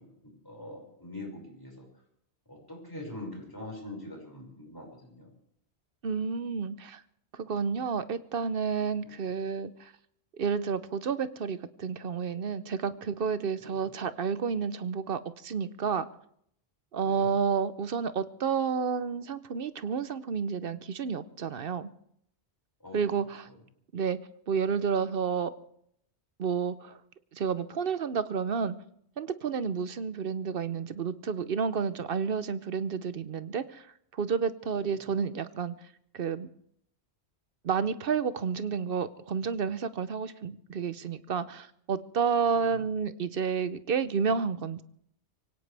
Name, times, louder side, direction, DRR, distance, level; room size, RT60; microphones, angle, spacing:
voice 1, 0.0-1.9 2.5-5.3 9.0-9.2 13.6-13.9 17.0-17.3 22.8-23.0 34.7-35.0 42.5-42.8, left 1 dB, 20° left, -1 dB, 5.8 m, -44 dB
voice 2, 6.0-7.0 7.3-9.9 10.3-16.1 16.9-21.9 22.9-23.5 23.9-24.2 24.5-25.5 26.4-27.0 27.3-28.7 29.2-33.9 34.1-35.7 36.1-36.5 37.6-44.8, right 6 dB, 60° right, 13 dB, 0.9 m, -30 dB
24.0 x 17.5 x 3.4 m, 0.70 s
omnidirectional pair, 1.1 m